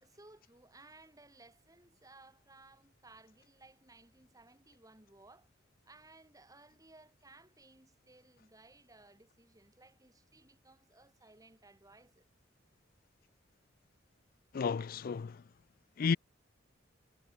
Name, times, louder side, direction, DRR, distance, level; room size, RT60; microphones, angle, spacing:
voice 1, 0.0-5.5 5.9-12.3, right 2 dB, 20° right, 3.4 m, -60 dB
voice 2, 14.5-15.4 16.0-16.2, left 5 dB, 50° left, 0.4 m, -32 dB
head